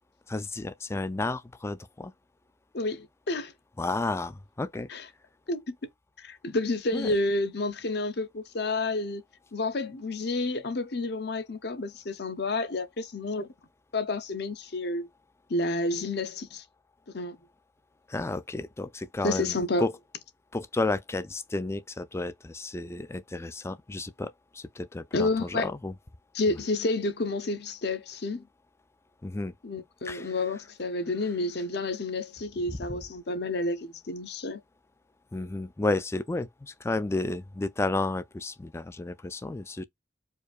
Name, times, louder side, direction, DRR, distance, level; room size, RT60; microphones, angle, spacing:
voice 1, 0.3-2.1 3.8-4.9 6.9-7.1 18.1-19.9 20.5-25.9 29.2-29.5 30.0-30.3 32.7-33.0 35.3-39.8, left 2 dB, 15° left, 0.3 m, -32 dB
voice 2, 2.7-3.5 4.9-5.1 5.5-5.7 6.2-9.2 9.5-13.5 13.9-15.1 15.5-16.6 17.1-17.4 19.2-19.9 25.1-25.7 26.3-28.4 29.6-34.6, left 2 dB, 60° left, 0.8 m, -30 dB
4.7 x 2.6 x 2.3 m
head